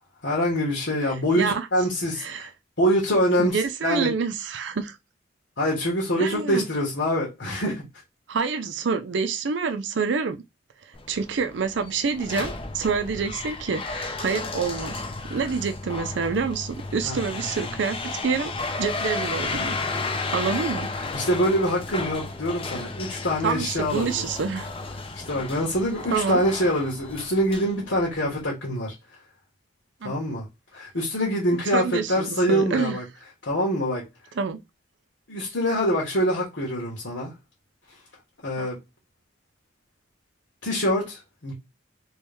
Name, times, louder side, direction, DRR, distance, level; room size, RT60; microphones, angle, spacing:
voice 1, 0.2-2.5 2.8-4.1 5.6-7.8 17.0-17.2 21.0-24.2 25.3-28.9 30.0-30.4 30.7-33.0 33.4-34.0 35.3-37.3 38.4-38.8 40.6-41.5, equal, 85° left, 1.5 m, -25 dB
voice 2, 1.4-1.7 2.2-2.5 3.4-5.0 6.2-6.6 8.3-10.4 11.1-15.0 15.3-18.5 18.8-19.8 20.3-20.9 23.4-24.7 26.1-26.4 30.0-30.1 31.7-33.0 34.4-34.6 38.6-38.7, right 5 dB, 70° right, 0.5 m, -27 dB
sound 1, 10.9-28.4, left 3 dB, 30° left, 0.5 m, -33 dB
3.1 x 3.1 x 3.4 m
head